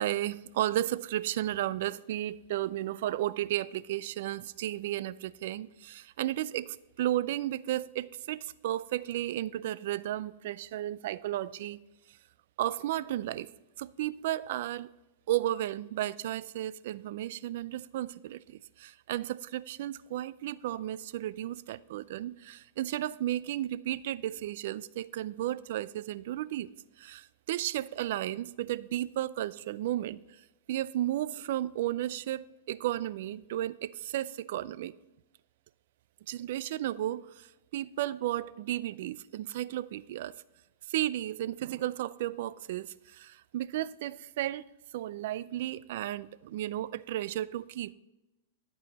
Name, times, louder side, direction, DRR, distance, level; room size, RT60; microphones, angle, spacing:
voice 1, 0.0-11.8 12.6-13.5 13.8-14.9 15.3-26.7 27.0-30.2 30.7-34.9 36.3-37.5 37.7-40.3 40.9-44.7 44.9-47.9, right 13 dB, 60° right, 0.3 m, -33 dB
12.5 x 4.8 x 4.0 m
supercardioid pair, 145°, 0 cm